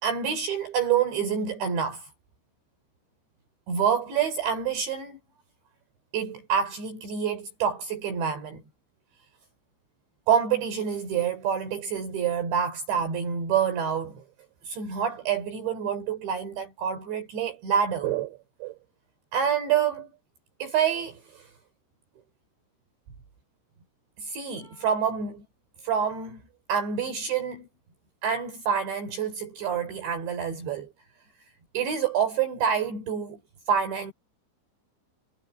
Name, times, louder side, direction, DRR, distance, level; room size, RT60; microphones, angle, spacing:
voice 1, 0.0-2.1 3.7-5.2 6.1-8.6 10.3-14.2 14.6-18.7 19.3-20.1 20.6-21.5 24.2-25.4 25.8-26.4 26.7-27.7 28.2-30.9 31.7-33.4 33.7-34.1, right 7 dB, 60° right, 6.4 m, -27 dB
omnidirectional pair, 5.8 m